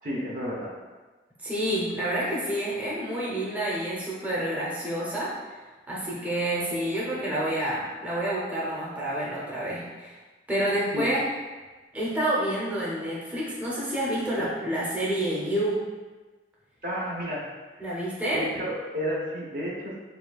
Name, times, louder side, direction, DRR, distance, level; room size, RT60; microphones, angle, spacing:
voice 1, 0.0-0.7 10.9-11.1 16.8-17.5 18.3-20.0, equal, 50° right, -3 dB, 0.8 m, -31 dB
voice 2, 1.4-5.4 5.9-10.1 10.5-11.2 11.9-15.8 17.8-18.4, right 1 dB, 10° right, -7 dB, 0.7 m, -28 dB
6.9 x 2.3 x 2.3 m, 1.3 s
head